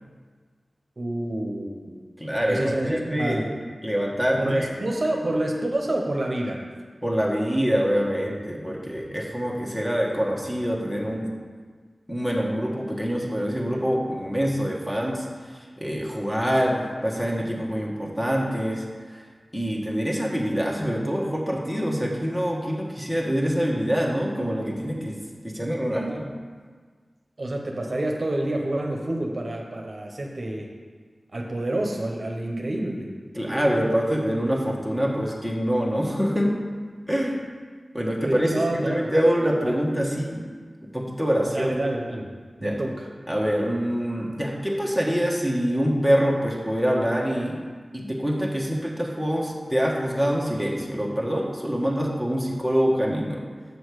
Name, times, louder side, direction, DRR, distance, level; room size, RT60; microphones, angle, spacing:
voice 1, 1.0-2.0 2.5-3.5 4.4-6.6 27.4-30.7 31.3-33.1 38.2-39.2 39.7-39.8 41.5-42.3 42.6-43.1, right 1 dB, 50° right, 1 dB, 0.9 m, -28 dB
voice 2, 2.2-3.5 3.8-4.7 7.0-11.3 12.1-19.3 19.5-25.2 25.4-26.3 33.3-36.6 37.1-37.4 37.9-40.5 40.9-41.7 42.6-42.8 43.3-47.6 47.9-53.4, equal, 5° left, -2 dB, 1.3 m, -25 dB
6.8 x 6.3 x 4.8 m, 1.5 s
wide cardioid pair, 75°, 0 cm